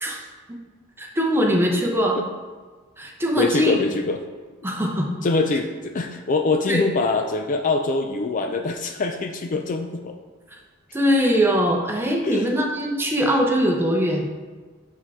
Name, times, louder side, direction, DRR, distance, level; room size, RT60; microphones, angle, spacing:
voice 1, 0.0-0.6 1.0-2.2 3.0-3.8 4.6-5.1 6.7-6.8 10.9-14.3, equal, 10° right, 0 dB, 0.8 m, -22 dB
voice 2, 3.4-4.2 5.2-10.2 12.2-12.5, left 3 dB, 40° left, 5 dB, 0.4 m, -24 dB
7.9 x 3.7 x 4.8 m, 1.4 s
head